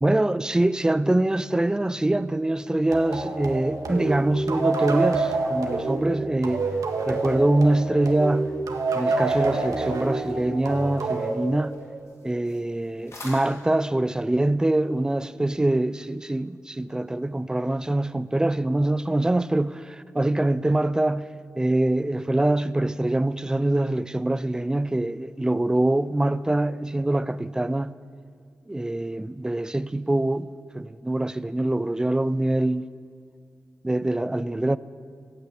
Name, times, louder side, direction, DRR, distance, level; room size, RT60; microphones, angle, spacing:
voice 1, 0.0-6.6 7.0-8.5 8.9-11.8 12.2-21.3 21.6-27.9 28.7-30.5 30.7-32.9 33.8-34.8, right 1 dB, 10° right, 0.4 m, -24 dB
sound 1, 2.9-12.2, right 3 dB, 90° right, 1.7 m, -27 dB
sound 2, 10.0-14.3, left 2 dB, 55° left, 3.7 m, -49 dB
15.5 x 8.7 x 9.1 m
wide cardioid pair, 140°, 6 cm